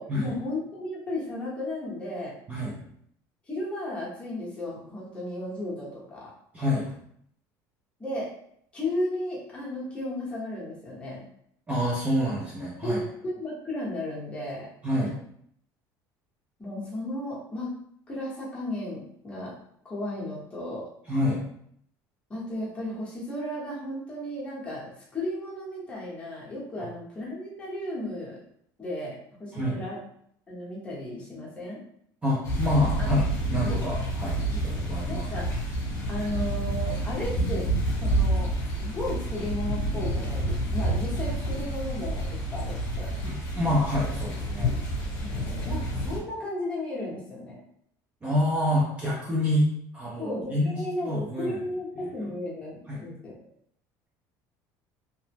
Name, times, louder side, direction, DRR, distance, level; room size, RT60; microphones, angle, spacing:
voice 1, 0.0-2.3 3.5-6.3 8.0-8.3 8.7-11.3 12.8-14.7 16.6-17.7 18.1-19.5 19.8-20.8 22.3-28.4 28.8-30.0 30.5-31.8 33.0-33.1 35.1-35.5 36.1-37.7 38.0-38.5 38.8-43.1 45.2-47.6 50.2-53.4, left 1 dB, 15° left, -6 dB, 0.9 m, -34 dB
voice 2, 6.5-6.9 11.7-13.0 14.8-15.1 21.1-21.4 29.5-29.8 32.2-35.3 43.2-44.7 48.2-49.7 49.9-51.6 52.9-53.0, left 1 dB, 15° right, -5 dB, 0.4 m, -27 dB
sound 1, 32.4-46.2, right 1 dB, 35° left, 1.0 m, -29 dB
2.9 x 2.1 x 3.3 m, 0.69 s
cardioid pair, 165°, 8 cm